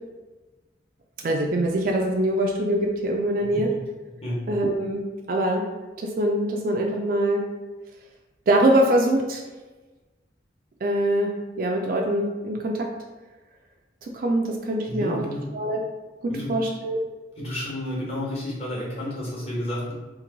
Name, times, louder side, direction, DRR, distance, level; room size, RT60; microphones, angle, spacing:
voice 1, 1.2-3.7 4.5-5.6 6.0-7.4 8.5-9.4 10.8-11.3 11.6-12.9 14.0-15.2 15.5-15.8 16.2-17.0, right 1 dB, 50° right, 1 dB, 0.3 m, -23 dB
voice 2, 14.9-15.5 16.3-16.6 17.4-19.9, left 1 dB, 35° left, -5 dB, 1.1 m, -31 dB
3.0 x 2.5 x 3.8 m, 1.2 s
head